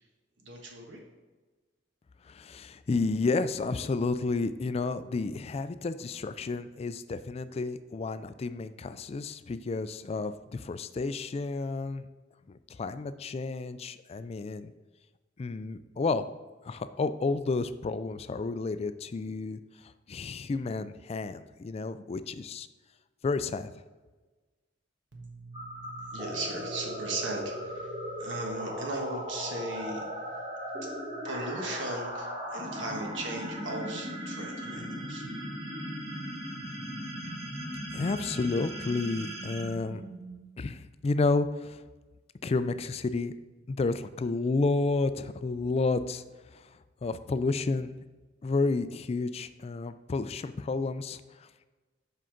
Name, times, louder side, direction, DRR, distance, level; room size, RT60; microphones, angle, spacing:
voice 1, 0.4-1.0 25.1-30.4 30.7-35.2, right 2 dB, 75° right, 1 dB, 1.3 m, -38 dB
voice 2, 2.3-12.1 12.7-14.7 15.4-16.3 16.6-19.6 20.1-22.7 23.2-23.7 37.9-40.0 40.6-41.8 42.4-43.3 43.7-46.2 47.0-47.9 48.4-51.2, left 3 dB, 35° left, 12 dB, 0.3 m, -31 dB
sound 1, 25.5-40.7, equal, 30° right, 1.3 m, -38 dB
7.6 x 5.5 x 3.8 m, 1.3 s
head